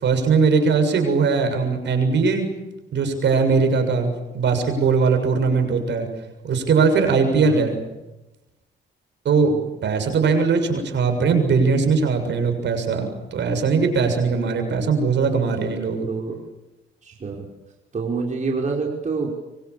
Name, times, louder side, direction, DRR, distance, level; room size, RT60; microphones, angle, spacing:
voice 1, 0.0-2.5 2.9-6.1 6.4-7.8 9.3-9.5 9.8-16.1, right 5 dB, 65° right, 6 dB, 7.1 m, -20 dB
voice 2, 17.0-17.5 17.9-19.3, right 4 dB, 40° right, 0 dB, 5.3 m, -27 dB
25.0 x 25.0 x 8.6 m, 1.0 s
cardioid pair, 90°, 20 cm